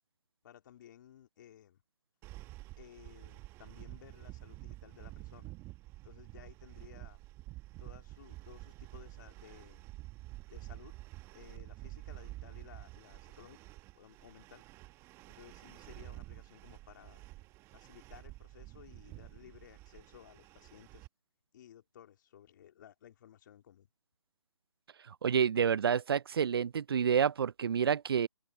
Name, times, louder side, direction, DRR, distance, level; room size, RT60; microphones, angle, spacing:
voice 1, 0.4-1.8 2.8-5.5 6.0-7.2 7.8-9.9 10.5-11.0 11.3-13.7 13.9-14.6 15.3-17.2 17.7-21.1 21.5-23.9, left 10 dB, 35° left, 3.1 m, -57 dB
sound 1, 2.2-21.1, right 19 dB, 15° right, 1.8 m, -50 dB
voice 2, 25.2-28.3, right 7 dB, 45° right, 0.5 m, -28 dB
figure-of-eight pair, 150°, 17 cm